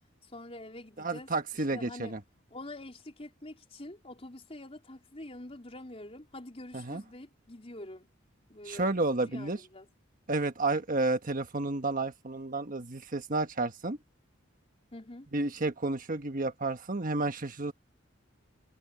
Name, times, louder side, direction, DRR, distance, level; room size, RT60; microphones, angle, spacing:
voice 1, 0.2-1.3 1.7-2.1 2.5-8.1 8.5-9.9 14.9-15.3, left 1 dB, 30° left, 4.2 m, -46 dB
voice 2, 1.0-2.2 6.7-7.0 8.6-9.6 10.3-14.0 15.3-17.7, right 2 dB, 45° right, 1.4 m, -31 dB
head